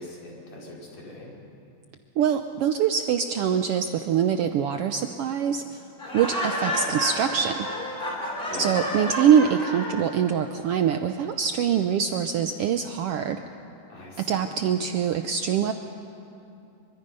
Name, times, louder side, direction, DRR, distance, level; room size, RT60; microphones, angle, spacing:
voice 1, 0.0-1.3 8.4-8.7 13.9-14.4, left 1 dB, 60° left, -3 dB, 5.6 m, -41 dB
voice 2, 2.2-5.6 6.1-7.7 8.6-13.4 14.2-15.7, right 8 dB, 80° right, 7 dB, 1.3 m, -24 dB
Laughter, 6.0-10.1, equal, 15° left, 3.3 m, -30 dB
26.0 x 24.0 x 5.5 m, 2.6 s
omnidirectional pair, 3.4 m